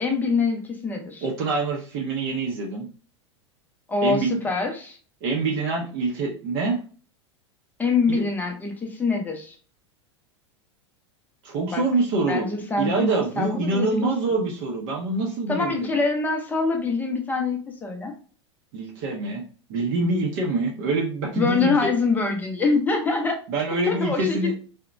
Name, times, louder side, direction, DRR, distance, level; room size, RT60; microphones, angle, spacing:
voice 1, 0.0-1.3 3.9-5.0 7.8-9.6 11.7-11.8 12.3-14.1 15.5-18.1 21.4-23.4 23.9-24.4, left 4 dB, 10° left, 2 dB, 0.5 m, -24 dB
voice 2, 1.2-2.9 4.0-4.4 5.2-6.8 8.1-8.2 11.4-12.5 12.8-16.0 18.7-19.4 19.7-21.9 23.5-24.5, right 3 dB, 45° right, -1 dB, 0.6 m, -25 dB
2.8 x 2.1 x 2.4 m, 0.40 s
figure-of-eight pair, 85°, 15 cm